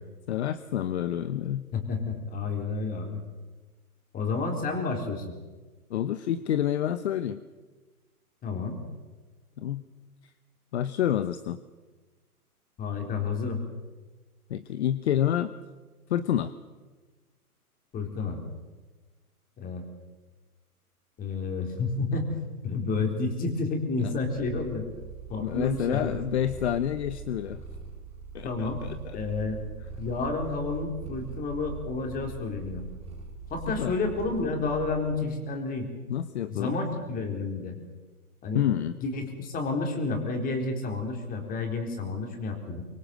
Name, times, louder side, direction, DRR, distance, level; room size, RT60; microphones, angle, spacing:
voice 1, 0.3-1.6 5.9-7.4 9.6-9.8 10.7-11.6 14.5-15.5 16.1-16.5 24.0-24.1 25.4-27.6 28.3-29.2 33.8-33.9 36.1-36.8 38.5-38.9, left 10 dB, 45° left, 13 dB, 1.1 m, -28 dB
voice 2, 1.7-3.2 4.1-5.3 8.4-8.8 12.8-13.6 17.9-18.4 19.6-19.8 21.2-24.9 25.3-26.2 28.4-28.8 29.1-29.6 30.0-32.9 33.5-35.9 36.5-37.7 38.4-38.7 39.0-42.8, left 3 dB, 20° left, 4 dB, 4.1 m, -30 dB
Purr, 24.2-35.4, right 5 dB, 15° right, 5.1 m, -42 dB
24.5 x 23.0 x 7.8 m, 1.3 s
figure-of-eight pair, 125°, 45 cm